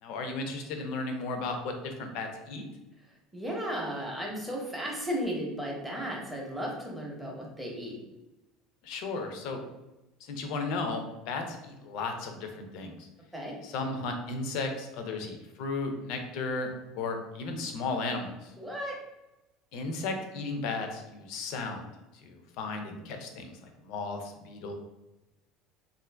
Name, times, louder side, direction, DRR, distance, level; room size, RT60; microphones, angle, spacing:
voice 1, 0.0-2.6 8.8-9.6 10.2-13.1 13.6-18.5 19.7-21.8 22.2-24.7, left 3 dB, 65° left, 5 dB, 0.5 m, -35 dB
voice 2, 3.3-8.0 13.3-13.5 18.6-19.0, equal, 5° right, -3 dB, 0.7 m, -35 dB
2.5 x 2.5 x 3.3 m, 0.98 s
cardioid pair, 150°, 0 cm